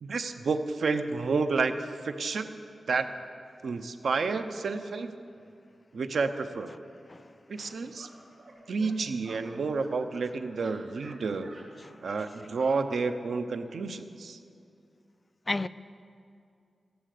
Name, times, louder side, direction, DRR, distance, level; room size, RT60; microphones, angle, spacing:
voice 1, 0.0-1.7 2.0-2.5 2.9-3.1 3.6-5.1 5.9-6.7 7.5-8.1 8.7-11.5 12.0-14.4, right 4 dB, 75° right, 0.7 m, -30 dB
voice 2, 7.1-7.2 7.6-7.7 11.8-12.0 15.5-15.7, left 2 dB, 25° left, 0.3 m, -32 dB
sound 1, 7.9-8.1 8.4-8.5 8.8-8.9 9.2-10.3 10.5-11.2 11.4-11.6 12.0-12.2 12.5-12.7, right 2 dB, 45° right, 2.4 m, -51 dB
14.0 x 11.5 x 6.7 m
wide cardioid pair, 130°, 0 cm